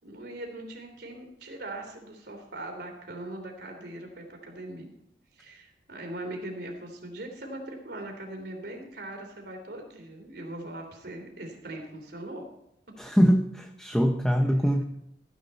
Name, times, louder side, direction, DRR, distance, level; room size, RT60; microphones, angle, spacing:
voice 1, 0.0-4.9 5.4-12.4, right 1 dB, 65° right, 3 dB, 3.3 m, -40 dB
voice 2, 13.0-14.8, equal, 5° left, 4 dB, 0.7 m, -23 dB
14.5 x 10.5 x 4.3 m, 0.79 s
head